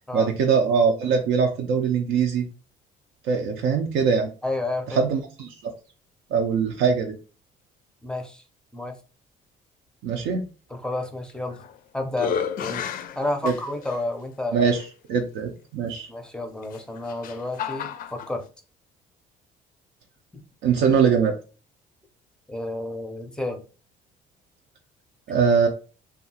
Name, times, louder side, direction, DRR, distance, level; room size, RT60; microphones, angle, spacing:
voice 1, 0.1-2.5 3.2-4.3 4.9-5.7 6.3-7.2 10.0-10.5 13.4-13.5 14.5-16.1 20.6-21.4 25.3-25.7, right 6 dB, 80° right, 3 dB, 0.5 m, -22 dB
voice 2, 4.4-5.0 8.0-8.4 8.7-9.0 10.7-11.6 11.9-12.9 13.2-14.6 16.1-18.4 22.5-23.6, left 2 dB, 5° left, 5 dB, 0.5 m, -30 dB
sound 1, 11.3-11.8 12.1-14.0 14.8-14.9 16.6-18.3, left 8 dB, 55° left, 0.4 m, -32 dB
2.7 x 2.3 x 2.7 m, 0.34 s
cardioid pair, 110°, 17 cm